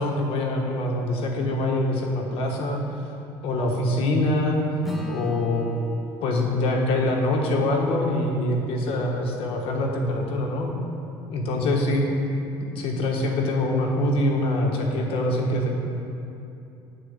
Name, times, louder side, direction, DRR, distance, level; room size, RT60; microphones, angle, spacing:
voice 1, 0.0-2.8 3.4-4.6 5.1-5.7 6.2-10.7 11.2-12.1 12.6-15.7, left 1 dB, 65° left, 1 dB, 1.3 m, -24 dB
Acoustic guitar / Strum, 4.8-9.6, equal, ahead, 1.0 m, -39 dB
8.7 x 4.4 x 6.5 m, 2.8 s
cardioid pair, 115°, 10 cm